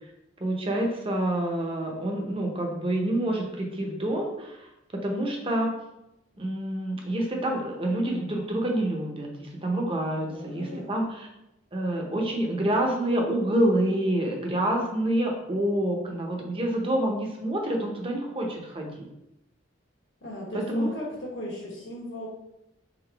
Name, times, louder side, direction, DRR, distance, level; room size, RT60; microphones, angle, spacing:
voice 1, 0.4-5.7 6.4-11.3 11.7-19.1 20.5-20.9, right 1 dB, 30° right, 1 dB, 0.8 m, -27 dB
voice 2, 10.2-11.1 20.2-22.3, equal, 65° left, -5 dB, 1.1 m, -37 dB
3.9 x 3.8 x 3.3 m, 0.88 s
head